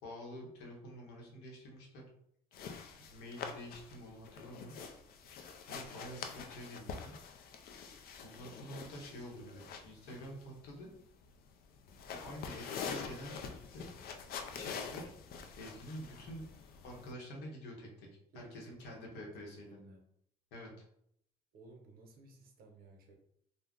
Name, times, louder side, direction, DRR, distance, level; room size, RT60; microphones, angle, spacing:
voice 1, 0.0-2.0 3.1-4.8 5.7-7.2 8.2-10.9 12.2-13.9 14.6-15.0 15.6-16.4 16.8-18.1 18.3-19.8 20.5-20.7, equal, 85° left, -1 dB, 0.9 m, -48 dB
sound 1, 2.5-17.1, left 6 dB, 65° left, 0.4 m, -46 dB
voice 2, 9.1-9.9 18.3-20.0 21.5-23.2, right 2 dB, 60° right, 3 dB, 0.7 m, -57 dB
2.5 x 2.0 x 3.5 m, 0.71 s
cardioid pair, 110°, 17 cm